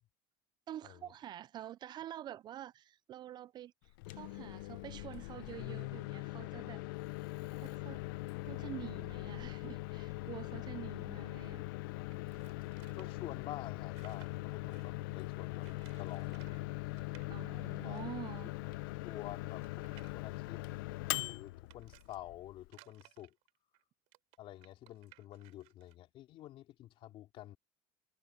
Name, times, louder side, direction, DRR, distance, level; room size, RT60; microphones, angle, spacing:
voice 1, 0.7-3.7 4.1-6.8 7.6-8.1 8.4-11.6 17.3-18.5, right 12 dB, 40° right, 0.4 m, -47 dB
Microwave oven, 3.9-22.7, left 20 dB, 85° left, 0.7 m, -41 dB
sound 1, 12.1-15.0 15.6-16.6 16.9-17.3 17.9-18.0 18.2-18.3 18.9-22.2 22.6-25.9, right 21 dB, 70° right, 3.2 m, -63 dB
voice 2, 12.9-15.7 16.0-16.4 17.8-18.0 18.4-18.5 19.0-20.6 21.0-23.3 24.4-27.6, left 14 dB, 55° left, 3.4 m, -49 dB
supercardioid pair, 115°, 11 cm